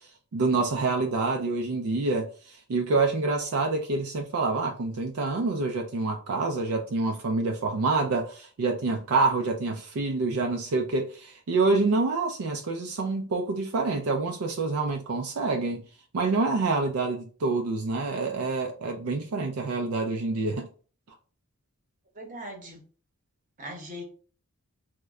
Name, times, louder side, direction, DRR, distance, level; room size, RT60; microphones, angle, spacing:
voice 1, 0.3-15.8 16.1-20.7, right 3 dB, 75° right, 0.4 m, -27 dB
voice 2, 22.2-22.8 23.6-24.0, equal, 35° right, 0.9 m, -39 dB
3.1 x 2.2 x 3.5 m
head